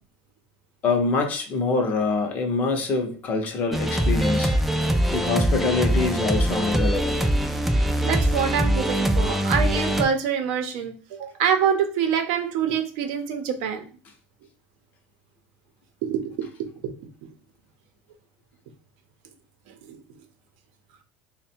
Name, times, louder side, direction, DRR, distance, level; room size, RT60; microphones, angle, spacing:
voice 1, 0.8-4.5 5.1-7.3, left 3 dB, 30° left, 4 dB, 0.7 m, -25 dB
sound 1, 3.7-10.0, right 1 dB, 5° right, 0.3 m, -22 dB
voice 2, 7.8-13.8 16.0-16.2 16.8-16.9 19.7-20.0, right 7 dB, 75° right, 6 dB, 0.7 m, -25 dB
3.5 x 2.2 x 4.2 m, 0.39 s
cardioid pair, 160°, 5 cm